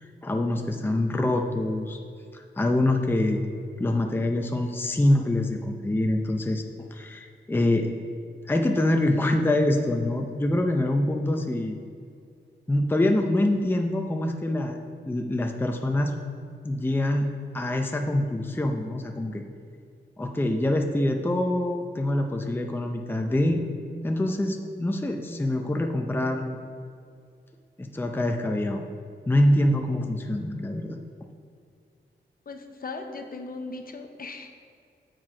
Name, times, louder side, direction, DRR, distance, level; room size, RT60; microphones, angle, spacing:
voice 1, 0.2-2.0 2.3-3.4 3.8-7.9 8.5-11.8 12.7-14.8 15.1-16.1 16.6-17.3 17.5-19.4 20.2-23.6 24.0-26.6 27.8-28.8 29.3-31.0, left 1 dB, 10° left, 3 dB, 0.5 m, -25 dB
voice 2, 32.5-34.5, left 3 dB, 50° left, 5 dB, 0.7 m, -38 dB
7.6 x 4.6 x 4.8 m, 2.3 s
wide cardioid pair, 90°, 19 cm